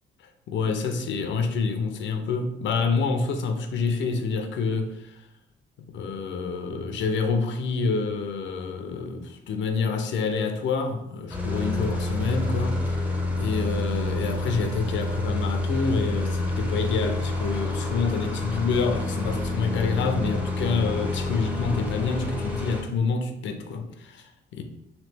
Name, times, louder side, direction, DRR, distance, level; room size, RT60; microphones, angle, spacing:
voice 1, 0.5-5.3 5.9-13.0 13.3-24.6, left 4 dB, 70° left, 0.5 m, -27 dB
sound 1, 11.3-22.8, left 2 dB, 5° right, 0.7 m, -28 dB
3.0 x 2.7 x 3.2 m
cardioid pair, 90°, 20 cm